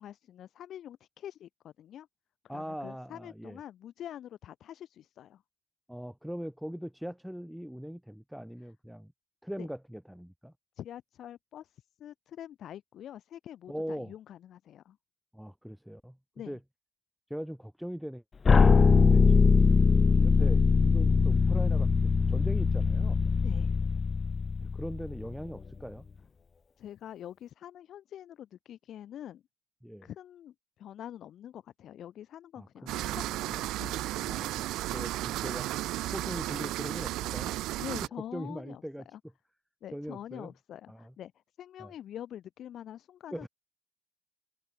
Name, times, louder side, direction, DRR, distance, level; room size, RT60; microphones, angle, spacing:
voice 1, 0.0-2.1 2.5-5.4 9.6-9.7 10.8-15.0 16.4-16.6 23.4-23.7 26.8-29.4 30.0-34.0 37.8-38.8 39.1-39.2 39.8-41.3 41.6-43.5, left 11 dB, 60° left, 2.2 m, -45 dB
voice 2, 2.5-3.6 5.9-9.1 9.4-10.5 13.7-14.1 15.3-16.2 16.5-16.6 17.3-18.2 18.7-19.9 20.2-23.2 24.6-26.0 29.8-30.1 32.6-33.7 34.2-35.7 36.1-37.8 38.3-39.0 39.9-40.5 40.9-41.1 41.8-41.9 43.3-43.5, equal, ahead, 4.4 m, -41 dB
sound 1, 18.4-25.4, left 5 dB, 35° left, 0.3 m, -22 dB
sound 2, 32.9-38.1, right 16 dB, 80° right, 1.6 m, -34 dB
open air
supercardioid pair, 85°, 0 cm